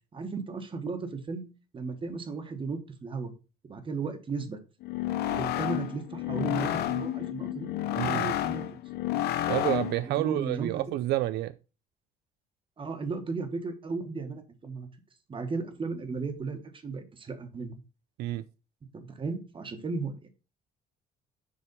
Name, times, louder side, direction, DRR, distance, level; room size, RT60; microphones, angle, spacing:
voice 1, 0.1-1.5 1.7-3.3 3.6-4.6 5.3-8.6 10.0-10.8 12.8-14.9 15.3-17.8 18.9-20.3, right 4 dB, 30° right, 1.3 m, -35 dB
sound 1, 4.8-10.1, left 12 dB, 75° left, 0.7 m, -30 dB
voice 2, 8.0-8.3 9.5-11.5 18.2-18.5, right 14 dB, 80° right, 0.4 m, -29 dB
6.7 x 3.4 x 5.2 m
cardioid pair, 110°, 17 cm